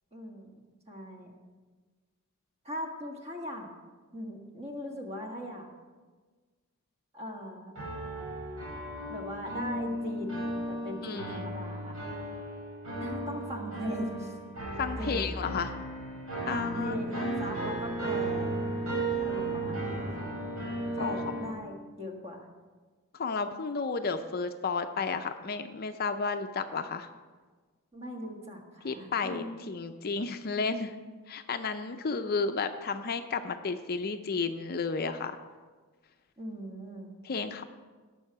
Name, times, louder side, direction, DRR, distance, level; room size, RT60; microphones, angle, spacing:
voice 1, 0.1-0.5 0.9-1.3 2.6-3.7 4.1-5.7 7.1-7.7 9.1-12.0 13.0-14.3 15.0-15.5 16.5-18.6 19.2-20.3 20.9-22.5 27.9-29.5 36.4-37.1, equal, 30° right, 1 dB, 1.6 m, -39 dB
sound 1, 7.7-21.5, right 2 dB, 80° right, 4.2 m, -35 dB
voice 2, 11.0-11.5 14.8-15.7 16.5-17.5 21.0-21.2 23.1-27.1 28.8-31.0 31.3-35.3 37.2-37.6, left 4 dB, 45° left, 8 dB, 0.5 m, -32 dB
17.5 x 6.3 x 4.7 m, 1.4 s
head